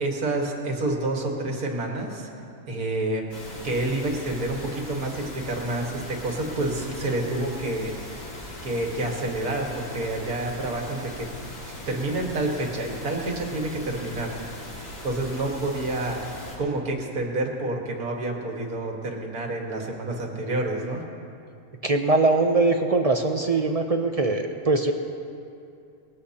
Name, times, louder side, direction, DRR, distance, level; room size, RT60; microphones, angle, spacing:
voice 1, 0.0-2.3 2.7-3.3 3.6-8.2 8.6-11.3 11.9-14.4 15.0-16.2 16.6-21.0, right 2 dB, 80° right, 0 dB, 2.1 m, -28 dB
sound 1, 3.3-16.6, left 1 dB, 60° left, 2.6 m, -40 dB
voice 2, 21.8-24.9, right 3 dB, 45° right, 4 dB, 0.5 m, -22 dB
20.0 x 14.5 x 2.9 m, 2.5 s
omnidirectional pair, 1.5 m